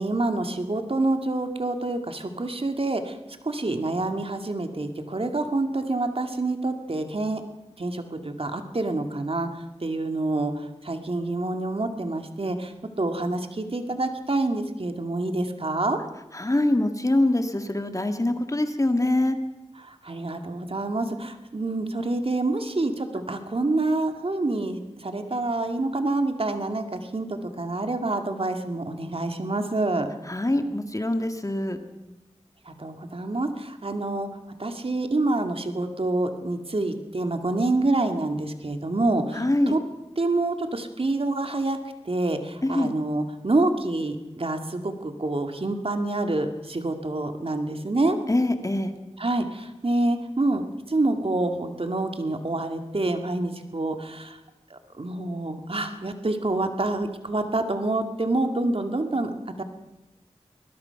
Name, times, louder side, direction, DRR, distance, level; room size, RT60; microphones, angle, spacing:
voice 1, 0.0-3.2 3.4-7.4 7.8-9.5 9.8-12.7 13.0-16.0 19.8-30.1 32.7-34.3 34.6-39.8 40.2-41.8 42.1-48.2 49.2-54.4 54.7-59.3 59.6-59.7, right 2 dB, 55° right, 6 dB, 2.2 m, -27 dB
voice 2, 16.3-19.4 30.3-31.8 39.4-39.7 42.6-42.9 48.3-48.9, left 1 dB, 30° left, 7 dB, 2.0 m, -24 dB
22.5 x 20.0 x 5.9 m, 1.0 s
wide cardioid pair, 55°, 11 cm